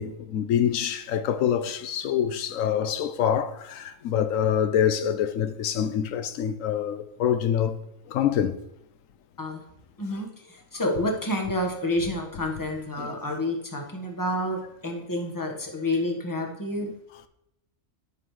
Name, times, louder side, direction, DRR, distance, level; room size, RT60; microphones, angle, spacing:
voice 1, 0.0-7.7 8.1-8.6 13.0-13.1 16.8-16.9, left 9 dB, 85° left, 1.0 m, -25 dB
voice 2, 10.7-16.9, left 1 dB, 15° left, 1.3 m, -29 dB
11.0 x 6.1 x 3.2 m
omnidirectional pair, 1.3 m